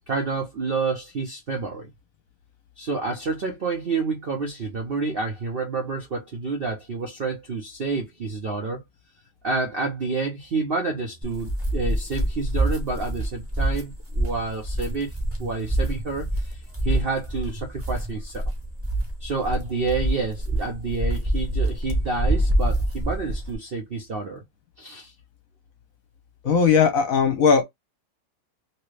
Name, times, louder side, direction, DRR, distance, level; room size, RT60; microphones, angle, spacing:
voice 1, 0.1-1.9 2.8-8.8 9.4-15.1 15.4-16.6 16.8-18.4 19.2-24.4 24.8-25.1, right 4 dB, 55° right, 0.6 m, -29 dB
sound 1, 11.2-23.5, right 1 dB, 10° right, 0.6 m, -26 dB
voice 2, 26.4-27.6, left 6 dB, 60° left, 1.1 m, -18 dB
3.0 x 2.9 x 3.1 m
omnidirectional pair, 1.9 m